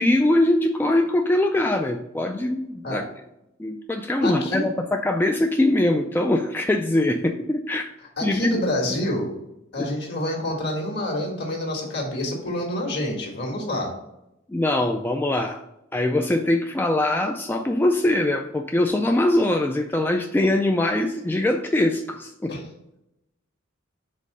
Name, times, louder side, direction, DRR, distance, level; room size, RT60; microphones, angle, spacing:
voice 1, 0.0-3.0 3.6-7.9 8.2-8.5 9.8-9.9 14.5-15.6 15.9-22.5, left 1 dB, 10° left, 4 dB, 0.3 m, -22 dB
voice 2, 4.2-4.7 8.2-9.3 9.7-13.9 22.5-22.6, left 1 dB, 55° left, -1 dB, 1.8 m, -27 dB
5.2 x 3.7 x 5.3 m, 0.85 s
head